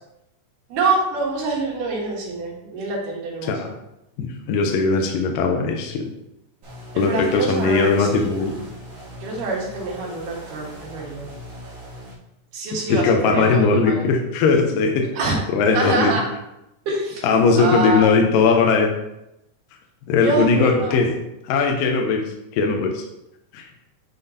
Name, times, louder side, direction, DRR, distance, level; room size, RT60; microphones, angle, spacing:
voice 1, 0.7-3.5 6.9-8.6 9.2-11.3 12.5-14.1 15.2-15.3 15.7-16.2 16.9-17.2 17.6-18.1 20.2-21.0, right 3 dB, 75° right, -3 dB, 3.0 m, -25 dB
voice 2, 4.2-6.1 7.0-8.5 12.9-15.1 15.5-16.2 17.2-18.9 20.1-21.1 21.4-22.2 22.5-23.0 23.5-23.7, left 4 dB, 90° left, 3 dB, 2.4 m, -19 dB
sound 1, 6.6-12.1, equal, 50° right, 2.1 m, -40 dB
9.3 x 3.9 x 2.7 m, 0.87 s
omnidirectional pair, 3.8 m